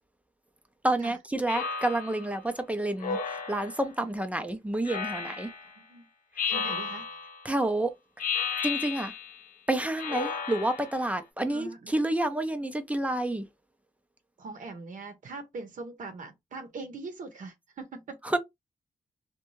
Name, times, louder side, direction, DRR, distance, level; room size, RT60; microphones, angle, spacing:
voice 1, 0.8-5.5 7.4-7.9 8.6-9.1 9.7-13.5 18.2-18.4, right 1 dB, 10° right, 0.5 m, -29 dB
Speech synthesizer, 1.5-2.3 3.0-3.9 4.8-5.7 6.4-7.4 8.2-9.4 10.0-11.0, left 5 dB, 85° left, 0.7 m, -33 dB
voice 2, 5.6-6.1 6.4-7.1 11.5-11.9 14.4-18.2, right 3 dB, 70° right, 0.7 m, -42 dB
2.6 x 2.2 x 3.0 m
cardioid pair, 85°, 14 cm